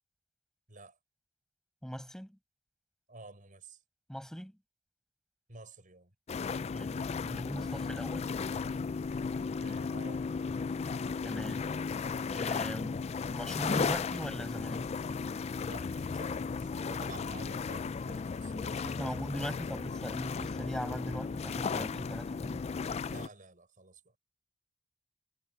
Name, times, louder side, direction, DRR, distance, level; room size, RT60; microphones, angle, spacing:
voice 1, 1.8-2.4 4.1-4.6 6.7-8.3 11.2-11.7 12.3-15.2 18.5-22.7, equal, 5° left, 7.4 m, -40 dB
voice 2, 3.1-3.8 5.5-6.1 9.5-10.2 15.6-20.0 23.0-24.1, right 2 dB, 45° right, 6.4 m, -51 dB
sound 1, 6.3-23.3, left 5 dB, 35° left, 0.3 m, -35 dB
head